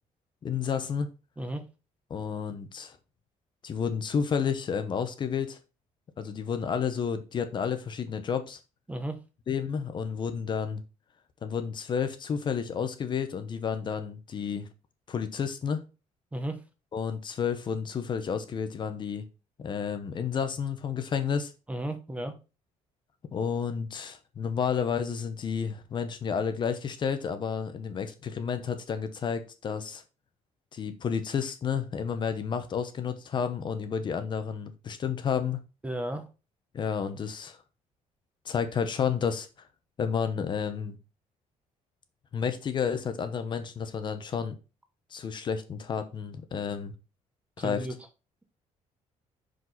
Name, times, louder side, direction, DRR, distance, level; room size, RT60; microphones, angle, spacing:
voice 1, 0.4-1.1 2.1-3.0 3.6-5.6 6.2-8.6 9.5-10.8 11.4-14.7 15.1-15.8 16.9-19.3 19.6-21.5 23.3-30.0 30.7-35.6 36.7-37.6 38.4-39.5 40.0-41.0 42.3-44.6 45.1-46.9 47.6-47.9, left 7 dB, 35° left, 0.8 m, -31 dB
voice 2, 21.7-22.4 35.8-36.2 47.6-47.9, right 1 dB, 10° right, 0.8 m, -34 dB
6.0 x 5.1 x 4.0 m
cardioid pair, 160°, 13 cm